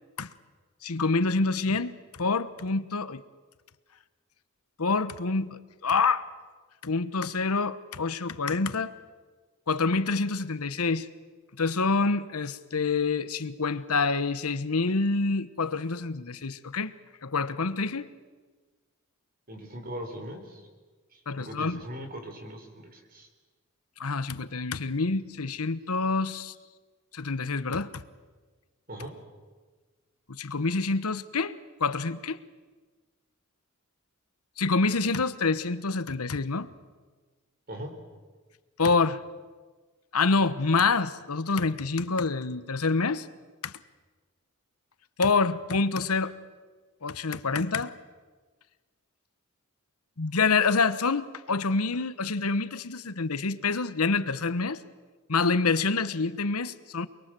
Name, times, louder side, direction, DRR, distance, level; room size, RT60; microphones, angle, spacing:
voice 1, 0.8-3.2 4.8-6.2 6.8-8.9 9.7-11.1 11.6-16.9 17.2-18.1 21.3-21.8 24.0-26.5 27.1-28.0 30.3-31.5 31.8-32.4 34.6-36.7 38.8-39.2 40.1-43.3 43.6-43.7 45.2-46.3 47.0-47.9 50.2-54.8 55.3-57.1, left 4 dB, 85° left, 1.1 m, -27 dB
voice 2, 19.5-20.6 21.1-23.3 28.9-29.1 37.7-37.9, equal, 40° right, 4.3 m, -40 dB
28.5 x 21.5 x 7.7 m
head